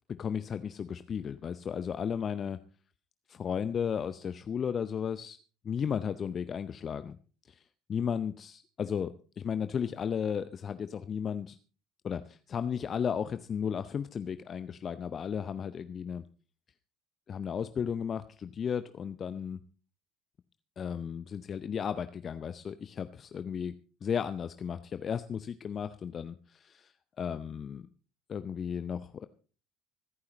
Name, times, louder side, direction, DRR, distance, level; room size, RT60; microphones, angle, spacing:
voice 1, 0.2-2.6 3.3-5.4 5.6-7.2 7.5-7.6 7.9-11.6 12.0-16.2 17.3-19.6 20.8-23.7 24.0-27.9 28.3-29.3, left 7 dB, 35° left, 12 dB, 0.6 m, -34 dB
25.5 x 9.6 x 3.1 m, 0.38 s
figure-of-eight pair, 60°, 0 cm